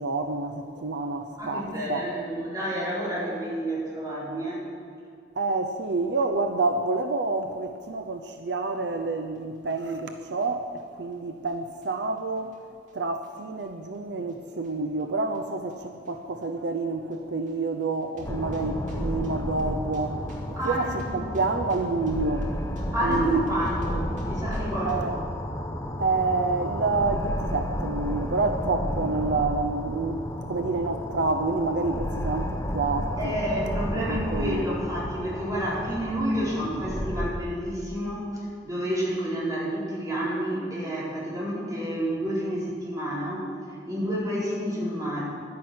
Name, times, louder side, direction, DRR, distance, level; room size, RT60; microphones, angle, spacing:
voice 1, 0.0-2.0 5.4-12.6 12.9-22.5 23.0-23.4 24.8-25.1 26.0-33.4 34.1-34.7, right 3 dB, 75° right, 0.7 m, -28 dB
voice 2, 1.4-4.6 20.6-21.2 22.9-25.1 28.9-29.1 33.2-43.4 43.8-45.2, equal, 20° right, 4.4 m, -29 dB
sound 1, 9.7-10.4 10.8-10.9 11.5-11.6 11.8-11.9 12.4-13.3 13.9-14.3 14.6-14.7 15.3-15.8 16.0-16.1 16.4-16.5 17.1-17.2 17.5-17.6 18.0-25.1, right 1 dB, 45° right, 2.4 m, -44 dB
sound 2, 18.2-37.3, equal, 15° left, 1.0 m, -32 dB
11.0 x 10.5 x 7.7 m
head